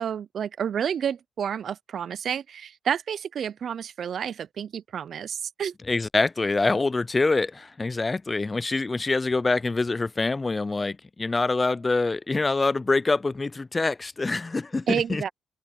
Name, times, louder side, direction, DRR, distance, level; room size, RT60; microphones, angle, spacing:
voice 1, 0.0-5.7 14.9-15.3, right 8 dB, 55° right, 0.5 m, -30 dB
voice 2, 5.9-15.3, left 3 dB, 25° left, 0.4 m, -25 dB
open air
cardioid pair, 90°, 0 cm